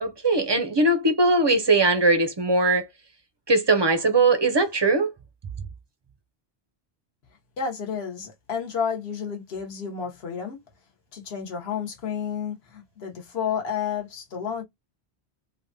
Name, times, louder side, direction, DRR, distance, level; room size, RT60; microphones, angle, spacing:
voice 1, 0.0-2.9 3.5-5.1, right 2 dB, 40° right, 0.4 m, -20 dB
voice 2, 7.6-10.6 11.1-14.6, left 7 dB, 70° left, 1.2 m, -31 dB
3.3 x 2.2 x 2.6 m
omnidirectional pair, 1.1 m